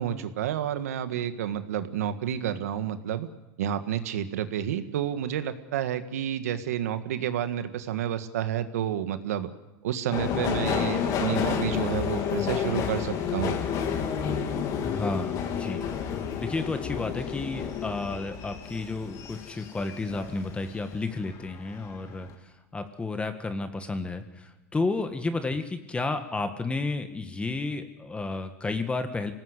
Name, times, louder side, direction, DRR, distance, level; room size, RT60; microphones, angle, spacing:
voice 1, 0.0-3.3 3.6-9.5 9.8-13.6, right 10 dB, 90° right, 10 dB, 1.7 m, -30 dB
Subway metro underground, 10.1-20.8 21.2-21.9 22.2-22.3, left 7 dB, 50° left, 3.3 m, -30 dB
voice 2, 14.8-15.9 16.4-29.3, left 3 dB, 15° left, 8 dB, 1.7 m, -32 dB
25.0 x 18.5 x 8.3 m, 1.0 s
supercardioid pair, 120°, 8 cm